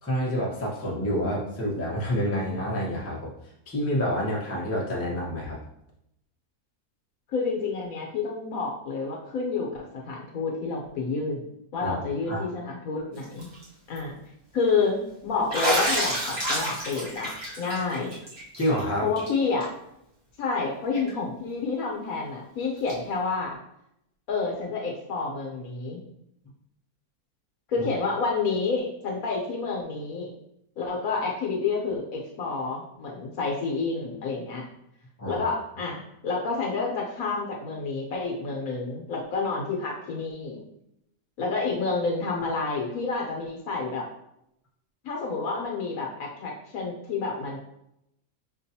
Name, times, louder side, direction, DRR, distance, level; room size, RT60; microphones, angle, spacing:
voice 1, 0.0-3.3 3.7-5.6 11.8-11.9 12.3-12.5 18.6-19.1 27.8-27.9 35.2-35.4, equal, 15° left, -4 dB, 0.6 m, -28 dB
voice 2, 7.3-9.7 10.0-11.4 11.7-13.5 13.9-14.2 14.5-18.2 19.0-19.7 20.4-23.6 24.3-26.0 27.7-30.3 30.8-34.6 35.3-40.6 41.4-44.0 45.0-47.6, left 4 dB, 65° left, -1 dB, 1.2 m, -29 dB
Bathtub (filling or washing), 13.2-13.6 14.0-14.1 15.5-18.8 19.2-19.3 19.6-19.7 21.1-21.2 22.9-23.0, right 1 dB, 20° right, 0.7 m, -29 dB
5.9 x 2.5 x 2.7 m, 0.79 s
omnidirectional pair, 1.6 m